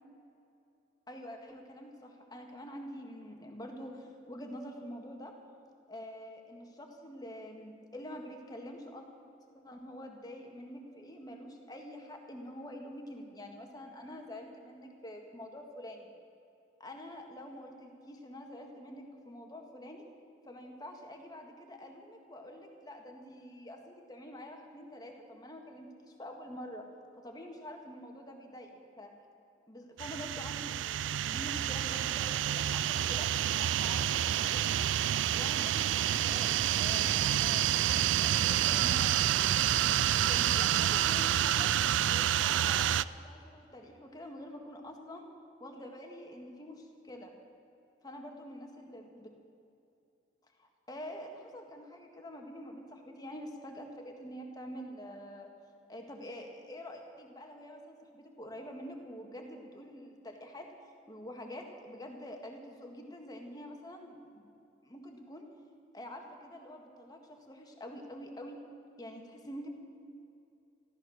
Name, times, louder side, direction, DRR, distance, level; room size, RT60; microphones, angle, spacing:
voice 1, 1.1-5.3 5.9-9.1 9.6-16.1 16.8-20.1 20.4-26.9 27.2-28.7 29.0-29.1 29.7-33.3 33.6-34.9 35.3-39.4 40.3-41.7 42.1-45.2 45.6-47.3 48.0-49.3 50.6-55.5 55.9-60.7 61.1-64.5 64.8-65.4 65.9-68.6 69.0-69.7, equal, 20° left, 2 dB, 1.7 m, -46 dB
sound 1, 30.0-43.0, right 11 dB, 85° right, 0.3 m, -28 dB
14.0 x 13.5 x 6.4 m, 2.7 s
head